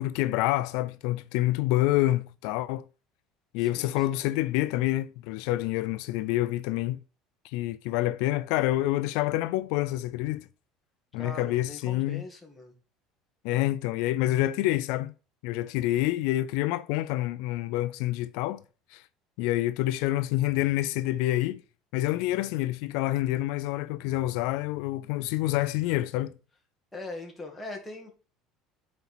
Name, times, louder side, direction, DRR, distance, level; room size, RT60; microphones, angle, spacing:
voice 1, 0.0-2.8 3.5-7.0 7.4-10.5 11.1-12.2 13.4-15.1 15.4-18.6 18.9-19.0 19.4-21.6 21.9-26.3, left 16 dB, 75° left, 0.3 m, -27 dB
voice 2, 3.6-4.3 11.2-12.7 14.4-14.7 26.9-28.1, left 2 dB, 5° left, 1.6 m, -41 dB
7.9 x 4.3 x 4.2 m
cardioid pair, 160°, 0 cm